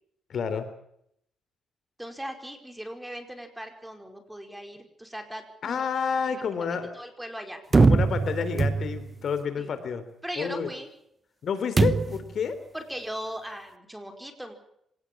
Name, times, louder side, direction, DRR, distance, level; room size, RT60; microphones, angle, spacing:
voice 1, 0.3-0.7 5.6-6.9 7.8-10.0 10.4-10.7 11.4-12.6, left 6 dB, 55° left, 11 dB, 3.6 m, -29 dB
voice 2, 2.0-5.8 6.7-7.6 9.6-9.7 10.2-10.9 12.7-14.5, equal, 5° right, 5 dB, 4.9 m, -38 dB
sound 1, 7.7-9.2 11.8-12.3, right 4 dB, 25° right, 1.1 m, -22 dB
26.0 x 18.5 x 7.4 m, 0.74 s
cardioid pair, 115°, 0 cm